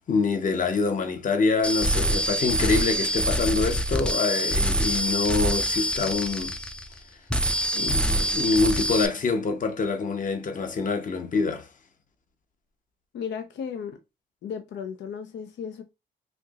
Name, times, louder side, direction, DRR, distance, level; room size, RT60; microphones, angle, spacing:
voice 1, 0.1-6.5 7.7-11.7, left 4 dB, 40° left, 0.9 m, -25 dB
sound 1, 1.6-7.0 7.3-9.1, right 1 dB, 5° left, 0.5 m, -25 dB
voice 2, 13.1-14.0 14.4-15.8, left 7 dB, 65° left, 0.6 m, -35 dB
4.4 x 2.8 x 2.4 m
cardioid pair, 90°, 20 cm